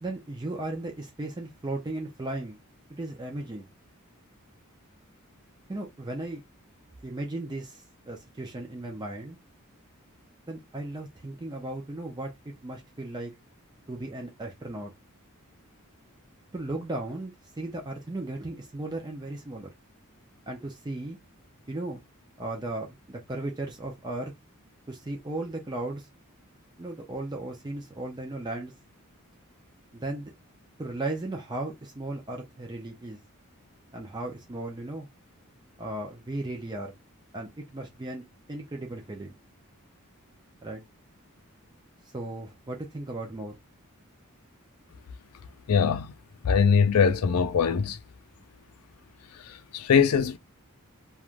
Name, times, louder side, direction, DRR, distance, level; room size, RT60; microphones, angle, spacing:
voice 1, 0.0-2.6 2.9-3.7 5.7-6.4 7.0-9.4 10.5-13.3 13.9-14.9 16.5-19.7 20.5-21.2 21.7-22.0 22.4-24.3 24.9-26.1 26.8-28.7 29.9-30.3 30.8-33.2 33.9-35.1 35.8-36.9 37.3-39.4 40.6-40.8 42.1-43.6, right 2 dB, 20° right, 0.5 m, -36 dB
voice 2, 45.7-46.1 46.4-48.0 49.7-50.4, left 6 dB, 80° left, 0.4 m, -22 dB
3.2 x 2.3 x 2.4 m
head